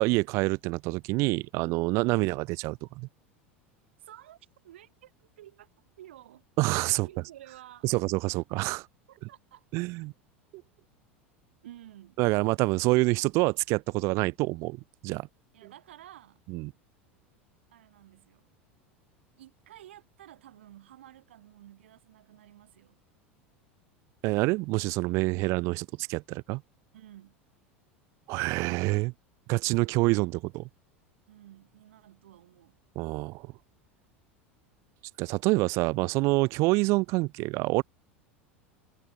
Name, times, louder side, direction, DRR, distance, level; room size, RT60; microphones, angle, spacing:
voice 1, 0.0-3.1 6.6-7.1 7.8-8.9 9.7-10.1 12.2-15.3 16.5-16.7 24.2-26.6 28.3-29.1 29.5-30.7 33.0-33.5 35.2-37.8, right 24 dB, 45° right, 0.4 m, -27 dB
voice 2, 4.0-4.4 4.6-5.7 6.0-8.0 9.1-9.9 11.6-12.2 15.5-16.4 17.7-18.5 19.4-23.0 26.9-27.4 31.3-32.8, right 13 dB, 65° right, 3.3 m, -52 dB
figure-of-eight pair, 80°, 7 cm